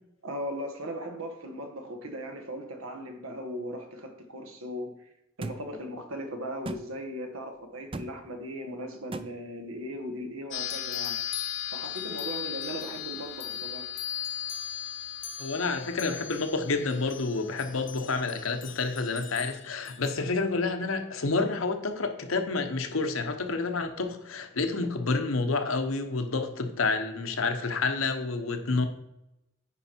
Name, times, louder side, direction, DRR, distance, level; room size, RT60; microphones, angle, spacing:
voice 1, 0.2-4.9 5.4-11.2 11.7-13.9, equal, 85° right, 5 dB, 1.4 m, -38 dB
sound 1, 5.4-5.6 6.6-6.8 7.9-8.1 9.1-9.3, right 2 dB, 25° right, 0.4 m, -35 dB
sound 2, 10.5-20.2, left 10 dB, 60° left, 0.9 m, -37 dB
voice 2, 15.4-28.9, left 3 dB, 80° left, 7 dB, 1.0 m, -29 dB
9.8 x 4.7 x 4.5 m, 0.85 s
head